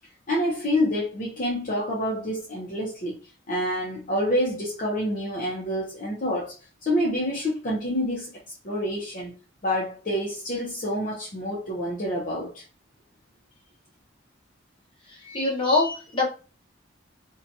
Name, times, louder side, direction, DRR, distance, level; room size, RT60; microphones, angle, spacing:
voice 1, 0.3-3.1 3.5-6.5 6.8-8.3 8.6-9.3 9.6-12.6, equal, 45° left, 0.6 m, -27 dB
voice 2, 15.2-16.3, left 3 dB, 25° left, 1.0 m, -23 dB
2.7 x 2.2 x 2.6 m
head